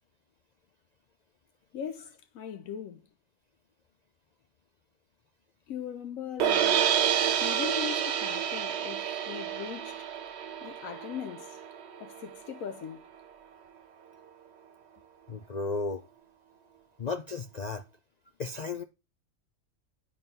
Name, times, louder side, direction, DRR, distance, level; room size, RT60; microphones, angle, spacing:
voice 1, 1.7-3.1 5.7-10.1 10.6-11.6 12.0-13.1, left 8 dB, 80° left, 1.1 m, -40 dB
sound 1, 6.4-12.6, right 9 dB, 60° right, 0.9 m, -29 dB
voice 2, 15.3-16.0 17.0-17.8 18.4-18.8, left 4 dB, 55° left, 0.4 m, -34 dB
9.4 x 3.9 x 5.4 m
omnidirectional pair, 1.4 m